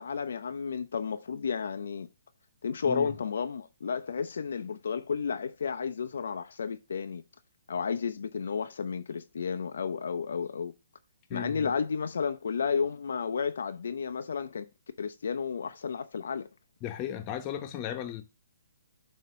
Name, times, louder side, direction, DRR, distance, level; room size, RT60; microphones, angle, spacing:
voice 1, 0.0-2.1 2.6-7.2 7.7-10.7 11.3-14.7 15.0-16.5, left 6 dB, 75° left, 0.5 m, -32 dB
voice 2, 11.3-11.7 16.8-18.2, left 10 dB, 30° left, 0.9 m, -35 dB
7.5 x 2.8 x 5.5 m
hypercardioid pair, 145°, 0 cm